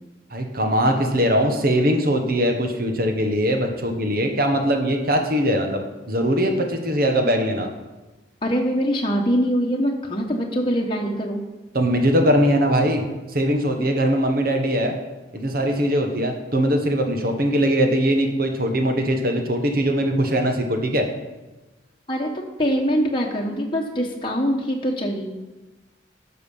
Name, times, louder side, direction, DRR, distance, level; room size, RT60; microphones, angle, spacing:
voice 1, 0.3-5.8 6.1-7.7 11.7-13.0 13.3-14.9 15.3-21.1, equal, 50° right, 4 dB, 1.4 m, -21 dB
voice 2, 8.4-11.4 22.1-22.3 22.6-25.3, equal, 25° left, -1 dB, 1.1 m, -23 dB
12.5 x 6.8 x 5.5 m, 1.1 s
head